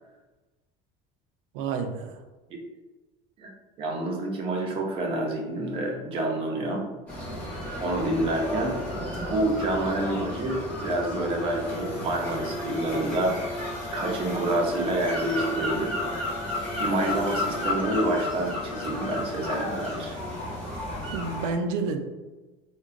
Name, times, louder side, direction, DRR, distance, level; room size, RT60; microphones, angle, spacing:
voice 1, 1.5-2.2 21.1-22.0, right 4 dB, 85° right, 6 dB, 0.4 m, -29 dB
voice 2, 3.8-6.9 7.8-13.6 13.9-16.0 16.8-20.1, right 1 dB, 35° right, 0 dB, 0.6 m, -28 dB
sound 1, 7.1-21.5, left 1 dB, 10° left, 0.9 m, -32 dB
3.7 x 2.1 x 2.4 m, 1.2 s
cardioid pair, 170°, 17 cm